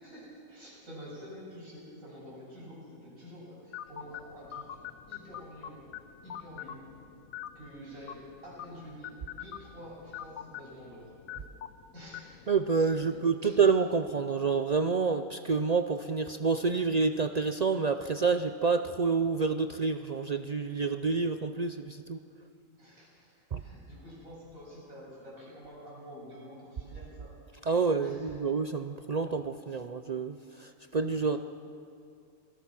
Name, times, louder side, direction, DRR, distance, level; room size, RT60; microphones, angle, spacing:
voice 1, 0.0-4.8 5.1-5.9 6.2-6.8 7.6-11.1 11.9-12.5 12.8-13.5 22.8-27.3 28.0-28.4 30.9-31.0, equal, 80° right, -5 dB, 7.4 m, -48 dB
sound 1, 3.7-13.2, left 10 dB, 80° left, 1.2 m, -46 dB
voice 2, 12.5-22.2 23.5-23.6 27.7-31.4, right 5 dB, 60° right, 8 dB, 0.4 m, -28 dB
27.0 x 18.0 x 5.9 m, 2.5 s
omnidirectional pair, 1.4 m